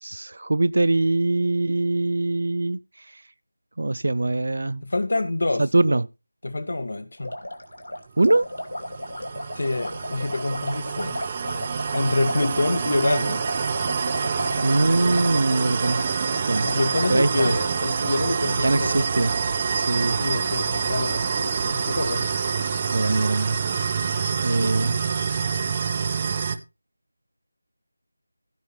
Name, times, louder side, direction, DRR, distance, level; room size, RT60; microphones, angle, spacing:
voice 1, 0.0-3.2 3.8-4.8 5.6-6.1 8.2-8.5 14.2-16.0 16.5-16.7 17.1-17.5 18.6-19.3 19.7-20.2 22.9-23.6 24.4-25.0, right 2 dB, 60° right, 0.4 m, -23 dB
voice 2, 4.8-5.6 6.4-7.3 9.6-11.2 11.9-13.4 16.6-19.3 20.2-22.3, left 2 dB, 60° left, 2.0 m, -26 dB
sound 1, 7.2-17.1, left 1 dB, 75° left, 2.4 m, -35 dB
sound 2, 8.5-26.6, right 5 dB, 25° right, 0.8 m, -26 dB
16.0 x 5.8 x 4.3 m
figure-of-eight pair, 165°, 0 cm